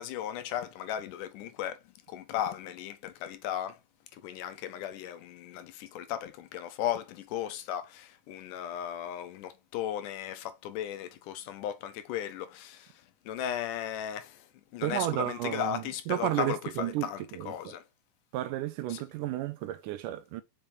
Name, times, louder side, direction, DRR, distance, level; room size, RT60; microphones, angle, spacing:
voice 1, 0.0-1.8 2.1-3.7 4.2-12.8 13.3-14.3 14.7-16.6 17.0-17.2 17.5-17.8, left 10 dB, 80° left, 2.0 m, -36 dB
voice 2, 14.8-17.8 18.3-20.4, right 13 dB, 75° right, 2.1 m, -33 dB
5.7 x 5.3 x 3.2 m
omnidirectional pair, 3.9 m